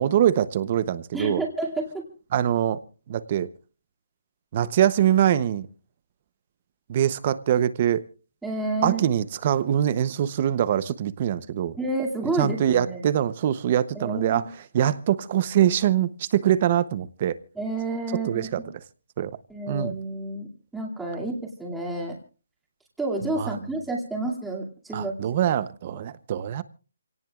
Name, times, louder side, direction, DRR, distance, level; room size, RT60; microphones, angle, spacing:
voice 1, 0.0-1.4 2.3-2.8 3.1-3.5 4.5-5.7 6.9-8.0 8.8-11.8 12.4-14.4 14.7-17.4 18.3-18.6 19.2-19.3 19.7-19.9 23.4-23.6 24.9-26.6, right 10 dB, 25° right, 16 dB, 0.7 m, -23 dB
voice 2, 1.1-2.1 8.4-9.0 11.8-13.0 13.9-14.5 14.8-14.9 17.6-18.6 19.5-22.1 23.0-25.5, right 2 dB, 5° right, -3 dB, 2.4 m, -30 dB
28.0 x 18.0 x 2.4 m, 0.36 s
hypercardioid pair, 175°, 0 cm